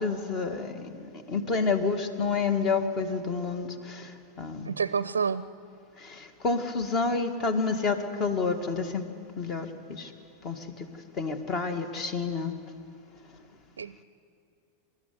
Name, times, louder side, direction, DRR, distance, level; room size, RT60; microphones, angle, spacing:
voice 1, 0.0-4.7 6.0-9.0 9.4-10.1 10.4-10.9 11.2-12.5, left 4 dB, 30° left, 8 dB, 2.1 m, -29 dB
voice 2, 4.7-5.4 13.8-14.0, right 6 dB, 70° right, 16 dB, 0.5 m, -28 dB
27.5 x 13.5 x 9.5 m, 2.4 s
figure-of-eight pair, 90°, 0 cm